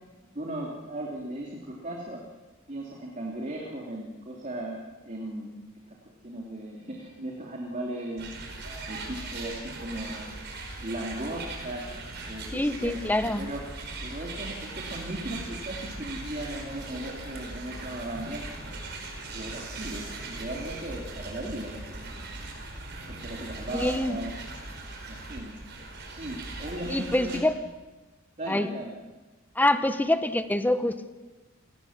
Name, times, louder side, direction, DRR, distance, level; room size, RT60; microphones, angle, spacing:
voice 1, 0.3-2.2 2.7-4.8 5.0-5.5 5.9-6.0 6.2-8.3 8.9-10.4 10.8-11.9 12.3-12.9 13.4-13.6 14.0-18.8 19.3-22.5 23.1-24.3 25.1-25.6 26.1-27.4 28.4-28.9, right 1 dB, 35° right, -1 dB, 2.9 m, -37 dB
sound 1, 8.2-27.4, right 2 dB, 55° right, 5.0 m, -39 dB
voice 2, 12.5-13.4 23.7-24.2 26.9-27.6 28.5-28.7 29.5-31.1, left 1 dB, 10° left, 10 dB, 0.9 m, -25 dB
29.0 x 18.5 x 7.3 m, 1.2 s
head